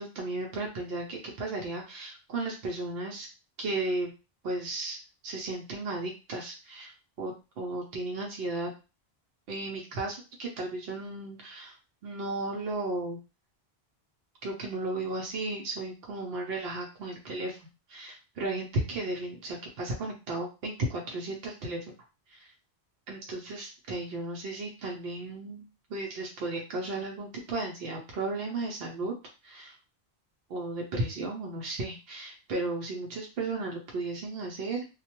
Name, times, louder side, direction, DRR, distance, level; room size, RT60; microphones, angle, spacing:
voice 1, 0.0-3.3 3.6-4.1 4.4-8.7 9.5-11.8 12.0-13.2 14.4-17.6 17.9-21.9 22.3-22.5 23.1-29.1 29.4-29.8 30.5-34.8, right 2 dB, 70° right, -1 dB, 0.8 m, -34 dB
2.2 x 2.2 x 2.8 m, 0.30 s
omnidirectional pair, 1.1 m